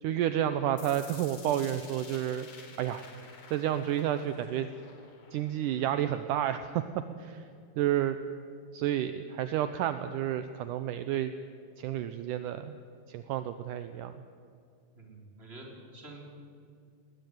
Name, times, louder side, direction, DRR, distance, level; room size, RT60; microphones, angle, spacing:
voice 1, 0.0-2.5 2.8-3.1 3.5-4.7 5.3-7.5 7.8-8.2 8.7-11.3 11.8-12.8 13.1-14.2, right 11 dB, 75° right, 10 dB, 1.9 m, -30 dB
sound 1, 0.8-6.8, left 5 dB, 80° left, 4.9 m, -51 dB
voice 2, 15.0-16.2, right 2 dB, 15° right, 0 dB, 3.8 m, -48 dB
20.0 x 20.0 x 9.3 m, 2.4 s
omnidirectional pair, 4.6 m